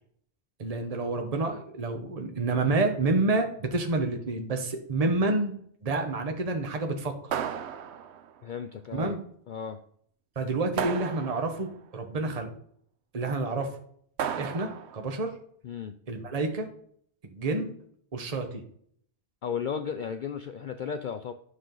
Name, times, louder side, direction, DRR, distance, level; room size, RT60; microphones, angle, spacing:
voice 1, 0.6-5.6 5.8-7.1 8.9-9.2 10.4-12.5 13.1-13.7 14.4-15.3 16.1-16.7 17.2-17.7 18.1-18.6, right 2 dB, 35° right, 4 dB, 1.1 m, -28 dB
sound 1, 7.3-8.4 10.8-11.7 14.2-15.1, right 8 dB, 75° right, 0.9 m, -33 dB
voice 2, 8.4-9.2 9.5-9.8 15.6-16.0 19.4-21.3, left 7 dB, 55° left, 8 dB, 0.6 m, -34 dB
9.6 x 6.2 x 3.9 m, 0.63 s
omnidirectional pair, 1.1 m